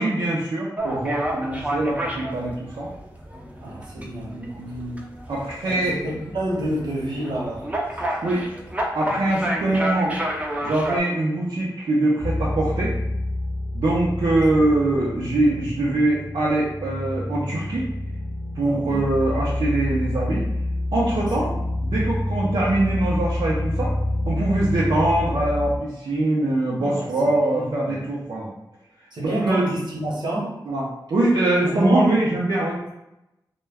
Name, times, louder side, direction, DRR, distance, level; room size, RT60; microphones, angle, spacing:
voice 1, 0.0-2.9 3.9-6.0 8.2-8.4 8.9-10.1 10.6-12.9 13.7-17.9 18.5-20.4 20.9-21.5 21.8-23.9 24.3-28.5 29.2-29.6 30.7-30.9 31.1-32.8, right 2 dB, 85° right, -7 dB, 0.5 m, -23 dB
sound 1, 0.8-11.0, right 1 dB, 20° right, 0.5 m, -30 dB
voice 2, 3.6-4.6 5.6-7.7 9.7-9.8 18.6-19.0 21.2-21.7 26.7-28.0 29.1-30.5 31.6-32.1, right 1 dB, 70° right, -4 dB, 0.9 m, -29 dB
sound 2, 12.2-25.8, left 1 dB, 35° left, 0.6 m, -28 dB
2.2 x 2.1 x 3.3 m, 0.90 s
wide cardioid pair, 85°, 8 cm